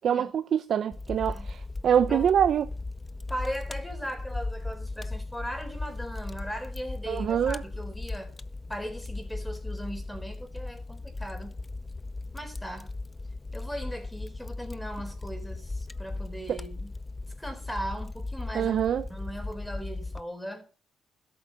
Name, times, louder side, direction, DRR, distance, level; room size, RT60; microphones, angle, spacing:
voice 1, 0.0-2.7 7.1-7.6 16.5-16.6 18.5-19.0, right 8 dB, 60° right, 0.7 m, -25 dB
Fire, 0.9-20.2, left 2 dB, 20° left, 0.7 m, -37 dB
voice 2, 3.3-8.3 8.7-11.6 12.3-12.9 13.5-16.9 17.4-18.8 19.1-20.7, equal, 5° left, 4.3 m, -38 dB
13.0 x 7.9 x 6.6 m
cardioid pair, 90°, 0 cm